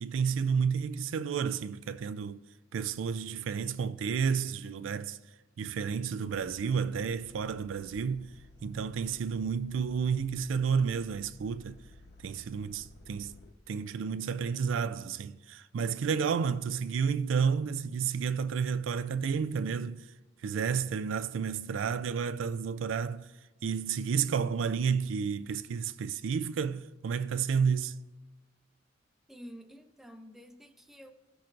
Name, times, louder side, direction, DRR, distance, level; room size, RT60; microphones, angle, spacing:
voice 1, 0.0-2.4 2.7-5.2 5.6-8.3 8.6-11.8 12.2-13.3 13.7-20.0 20.4-23.3 23.6-28.0, right 6 dB, 85° right, 0.4 m, -31 dB
sound 1, 6.3-13.5, left 1 dB, 60° left, 1.0 m, -55 dB
voice 2, 29.3-31.1, equal, ahead, 0.4 m, -49 dB
15.5 x 6.0 x 2.5 m
head